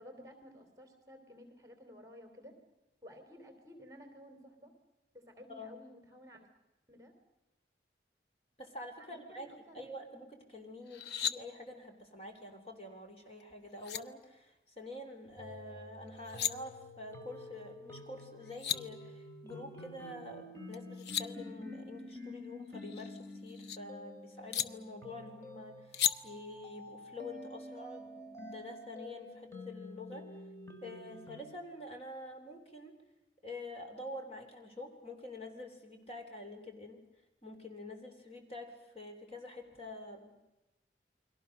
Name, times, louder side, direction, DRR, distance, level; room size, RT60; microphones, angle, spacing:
voice 1, 0.0-2.6 3.0-4.7 5.1-6.5 6.9-7.1 9.0-9.9, equal, 20° right, 6 dB, 3.5 m, -54 dB
voice 2, 5.5-5.8 8.6-30.3 30.8-32.9 33.4-37.0 37.4-40.4, left 2 dB, 35° left, 4 dB, 3.4 m, -47 dB
sound 1, 10.9-11.4 13.4-13.5 13.8-14.0 16.1-16.5 18.2-18.3 18.5-18.8 20.7-21.3 22.8-23.8 24.5-24.7 25.9-26.1, left 9 dB, 70° left, 0.8 m, -34 dB
sound 2, 15.4-31.4, left 1 dB, 15° left, 2.5 m, -49 dB
29.5 x 22.5 x 6.5 m, 0.95 s
head